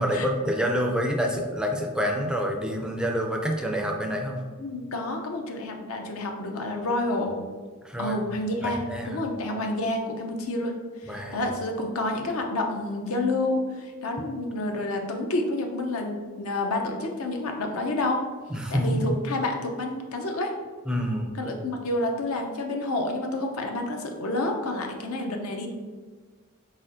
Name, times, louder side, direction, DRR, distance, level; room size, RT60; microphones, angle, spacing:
voice 1, 0.0-4.4 7.8-8.2 8.6-9.2 11.1-11.4 18.5-19.1 20.9-21.3, equal, 5° right, 1 dB, 0.3 m, -27 dB
voice 2, 4.6-7.4 8.0-10.7 11.0-18.2 18.7-20.5 21.4-25.7, left 2 dB, 75° left, 3 dB, 0.6 m, -29 dB
4.2 x 4.1 x 2.5 m, 1.5 s
head